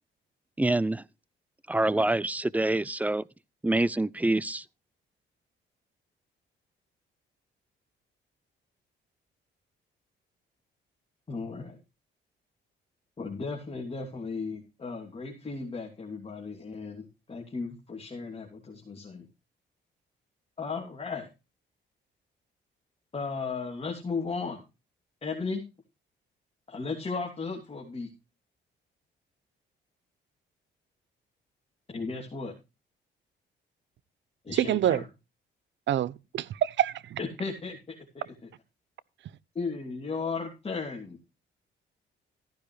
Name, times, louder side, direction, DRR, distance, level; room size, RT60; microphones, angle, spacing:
voice 1, 0.6-1.0 1.7-3.2 3.6-4.6, right 2 dB, 5° right, 0.5 m, -26 dB
voice 2, 11.3-11.8 13.2-19.2 20.6-21.3 23.1-24.6 25.2-25.6 26.7-28.1 31.9-32.5 34.4-35.0 37.2-38.5 39.5-41.2, left 4 dB, 30° left, 3.1 m, -35 dB
voice 3, 34.6-35.0 35.9-37.2, right 11 dB, 70° right, 0.7 m, -26 dB
14.5 x 10.5 x 3.3 m
cardioid pair, 90°, 20 cm